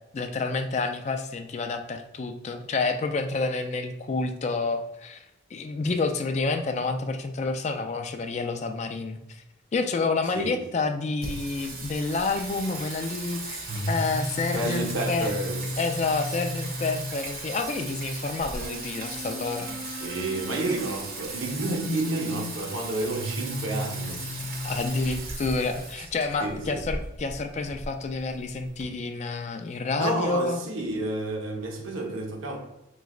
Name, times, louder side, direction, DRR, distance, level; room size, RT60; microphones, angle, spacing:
voice 1, 0.1-5.2 5.5-9.4 9.7-13.6 13.9-15.3 15.8-20.1 24.6-30.6, left 3 dB, 35° left, 0.3 m, -29 dB
Singing, 11.2-28.8, right 1 dB, 50° right, 0.9 m, -34 dB
voice 2, 14.5-15.6 19.6-19.7 20.0-24.3 26.0-26.1 26.4-26.8 30.0-32.6, right 2 dB, 90° right, 0.8 m, -30 dB
3.2 x 3.1 x 3.7 m
head